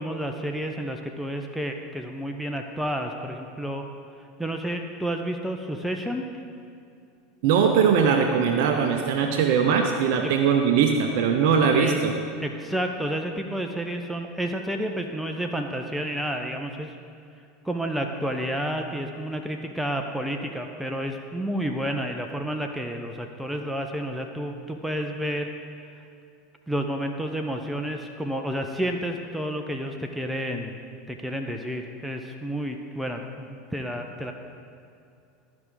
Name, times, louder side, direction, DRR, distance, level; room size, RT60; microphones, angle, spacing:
voice 1, 0.0-3.8 4.4-6.3 11.7-12.0 12.4-17.0 17.6-25.5 26.7-30.8 31.1-34.3, equal, ahead, 3 dB, 0.6 m, -30 dB
voice 2, 7.4-12.1, right 6 dB, 60° right, 4 dB, 0.6 m, -21 dB
13.0 x 5.0 x 3.7 m, 2.5 s
figure-of-eight pair, 80°, 0 cm